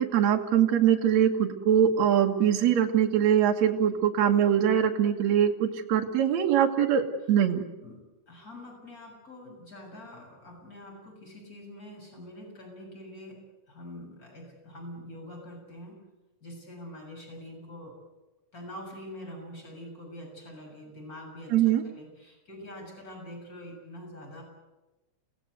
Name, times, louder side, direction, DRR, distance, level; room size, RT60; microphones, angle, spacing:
voice 1, 0.0-7.6 21.5-21.8, right 9 dB, 60° right, 1 dB, 2.6 m, -23 dB
voice 2, 7.8-16.0 16.4-18.0 18.5-24.4, left 1 dB, 25° left, 1 dB, 7.4 m, -45 dB
29.0 x 18.0 x 8.0 m, 1.1 s
omnidirectional pair, 3.8 m